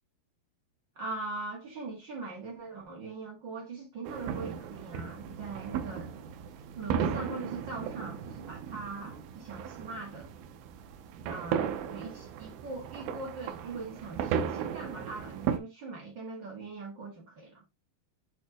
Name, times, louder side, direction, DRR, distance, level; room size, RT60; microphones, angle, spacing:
voice 1, 0.9-6.1 6.7-10.3 11.3-17.6, right 3 dB, 55° right, 1.2 m, -41 dB
sound 1, 4.0-15.6, right 8 dB, 80° right, 2.2 m, -36 dB
8.3 x 4.2 x 2.8 m
omnidirectional pair, 4.8 m